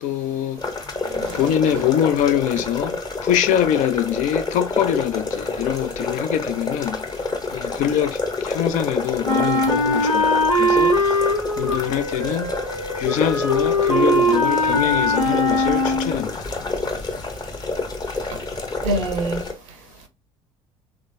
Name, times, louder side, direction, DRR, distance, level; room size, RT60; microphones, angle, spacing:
voice 1, 0.0-0.6 1.3-2.9 3.2-7.0 7.5-11.2 11.6-12.5 13.0-16.5, left 10 dB, 45° left, 0.5 m, -23 dB
sound 1, 0.6-19.5, left 3 dB, 25° left, 0.8 m, -29 dB
voice 2, 1.1-1.8 18.8-19.4, right 2 dB, 65° right, 0.8 m, -26 dB
Wind instrument woodwind instrument, 9.2-16.2, left 1 dB, 90° left, 0.8 m, -21 dB
3.6 x 3.1 x 2.6 m
figure-of-eight pair, 60°, 17 cm